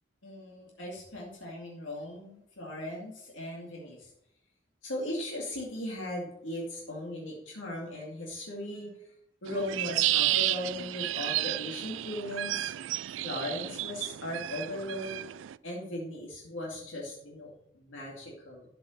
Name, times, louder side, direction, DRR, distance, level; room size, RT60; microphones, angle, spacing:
voice 1, 0.2-4.1 4.8-9.1 9.4-12.7 13.2-15.2 15.6-18.7, left 1 dB, 80° left, -2 dB, 2.3 m, -38 dB
sound 1, 9.5-15.6, right 15 dB, 75° right, 0.3 m, -32 dB
12.0 x 5.9 x 6.5 m, 0.75 s
head